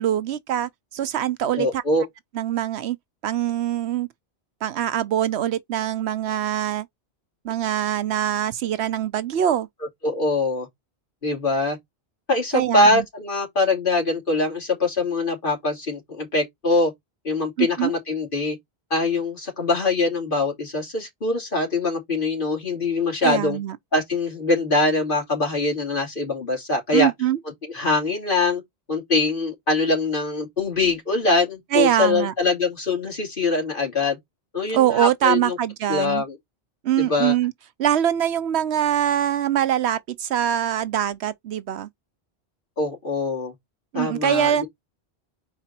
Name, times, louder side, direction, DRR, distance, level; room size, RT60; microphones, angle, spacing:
voice 1, 0.0-1.8 2.3-3.0 3.2-4.1 4.6-6.9 7.4-9.7 12.5-13.0 17.6-17.9 23.2-23.8 26.9-27.4 31.7-32.3 34.7-36.2 36.8-37.5 37.8-41.9 43.9-44.6, right 11 dB, 90° right, 1.0 m, -23 dB
voice 2, 1.6-2.0 10.0-10.7 11.2-11.8 12.3-16.9 17.2-18.6 18.9-23.6 23.9-27.1 27.6-28.6 28.9-34.2 34.5-35.6 35.9-36.4 37.0-37.3 42.8-43.5 43.9-44.7, left 3 dB, 55° left, 3.1 m, -23 dB
4.9 x 4.6 x 4.3 m
omnidirectional pair, 1.1 m